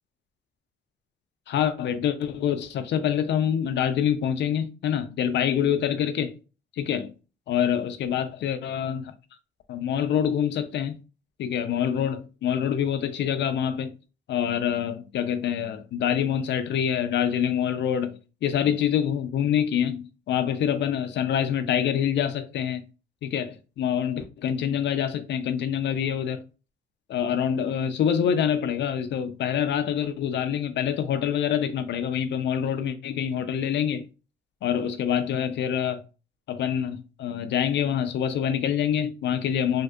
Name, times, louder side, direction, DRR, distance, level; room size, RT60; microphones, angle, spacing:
voice 1, 1.5-6.3 6.7-7.1 7.5-9.1 9.7-11.0 11.4-13.9 14.3-22.8 23.2-26.4 27.1-34.1 34.6-36.0 36.5-39.8, left 9 dB, 65° left, 0.4 m, -26 dB
3.5 x 2.6 x 2.2 m
cardioid pair, 90°, 20 cm